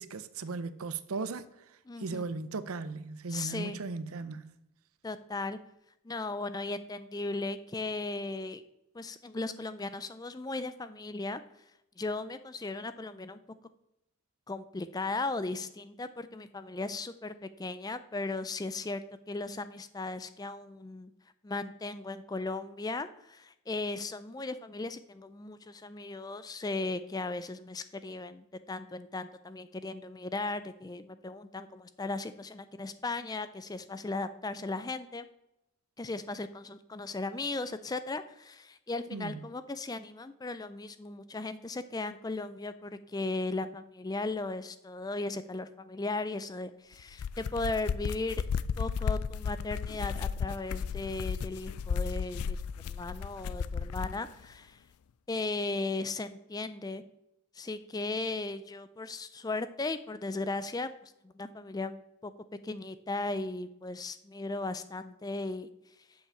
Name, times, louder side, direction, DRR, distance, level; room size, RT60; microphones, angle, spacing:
voice 1, 0.0-1.4 2.0-4.5 39.1-39.4, right 4 dB, 75° right, 0.6 m, -37 dB
voice 2, 1.9-2.3 3.3-3.8 5.0-5.6 6.0-8.6 8.9-11.4 12.0-13.4 14.5-19.0 19.3-21.1 21.4-35.3 36.0-48.4 48.8-52.6 52.8-54.8 55.3-57.0 57.5-62.3 62.6-65.7, left 3 dB, 15° left, 0.4 m, -37 dB
sound 1, 47.0-54.2, left 6 dB, 90° left, 0.4 m, -34 dB
7.4 x 5.6 x 7.0 m
head